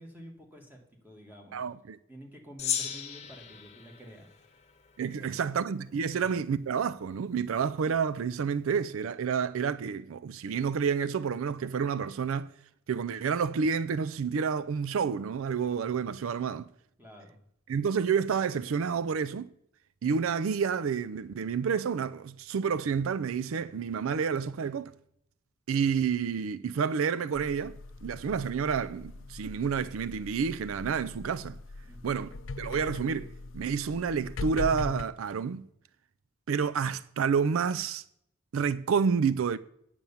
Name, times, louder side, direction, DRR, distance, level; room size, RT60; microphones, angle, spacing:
voice 1, 0.0-1.7 2.1-4.6 5.2-5.6 6.2-6.4 17.0-17.4 31.8-32.3, equal, 10° right, 1.7 m, -50 dB
voice 2, 1.5-2.0 5.0-12.5 12.9-16.7 17.7-19.5 20.0-24.9 25.7-27.8 28.0-31.6 32.0-32.3 32.6-33.3 33.5-35.6 36.5-38.0 38.5-39.6, right 6 dB, 80° right, 0.4 m, -29 dB
Gong, 2.6-5.2, left 9 dB, 30° left, 0.9 m, -36 dB
sound 1, 27.3-35.0, left 2 dB, 70° left, 0.5 m, -41 dB
9.1 x 6.9 x 7.0 m
head